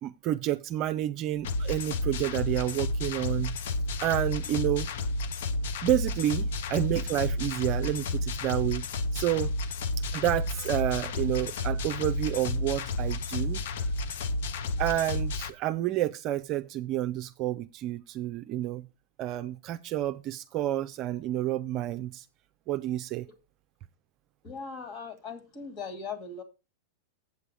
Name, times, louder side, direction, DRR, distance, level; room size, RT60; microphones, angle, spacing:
voice 1, 0.0-3.6 4.0-4.9 5.8-8.8 9.1-9.5 10.0-13.9 14.8-18.8 19.2-22.2 22.7-23.3, right 13 dB, 45° right, 0.5 m, -30 dB
sound 1, 1.4-15.5, left 2 dB, 70° left, 0.8 m, -31 dB
voice 2, 24.4-26.4, left 5 dB, 40° left, 2.1 m, -39 dB
8.2 x 6.8 x 4.9 m
hypercardioid pair, 105°, 0 cm